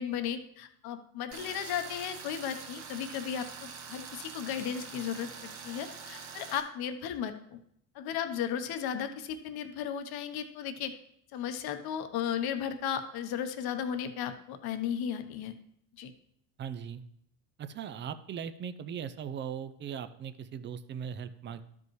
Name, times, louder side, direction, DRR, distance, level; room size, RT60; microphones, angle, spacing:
voice 1, 0.0-7.6 7.9-11.0 11.3-15.5 16.0-16.1, left 8 dB, 50° left, 8 dB, 1.0 m, -35 dB
Tools, 1.3-6.6, right 5 dB, 65° right, 1.9 m, -45 dB
voice 2, 16.6-17.0 17.6-21.6, right 8 dB, 25° right, 12 dB, 0.4 m, -39 dB
12.0 x 5.4 x 3.1 m, 0.71 s
hypercardioid pair, 90°, 48 cm